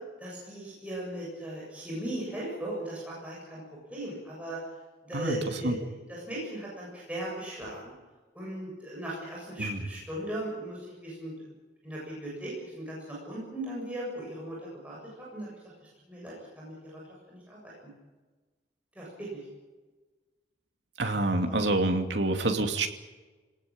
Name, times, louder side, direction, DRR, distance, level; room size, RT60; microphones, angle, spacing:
voice 1, 0.2-3.6 3.9-4.6 5.0-7.9 8.3-11.3 11.8-15.5 16.1-16.7 17.3-17.9 19.0-19.3 21.5-21.6, right 1 dB, 10° right, -5 dB, 7.5 m, -38 dB
voice 2, 21.0-22.9, right 2 dB, 70° right, 4 dB, 2.7 m, -27 dB
27.0 x 19.0 x 9.0 m, 1.3 s
head